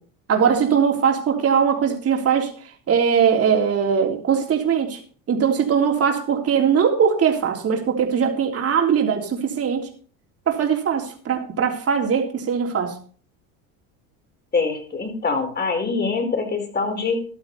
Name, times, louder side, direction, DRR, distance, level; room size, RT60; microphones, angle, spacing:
voice 1, 0.3-2.5 2.9-5.0 5.3-9.9 10.5-12.9, right 7 dB, 35° right, 2 dB, 3.5 m, -20 dB
voice 2, 14.5-17.2, left 4 dB, 25° left, 4 dB, 4.5 m, -24 dB
14.0 x 12.0 x 4.1 m, 0.43 s
supercardioid pair, 105°, 41 cm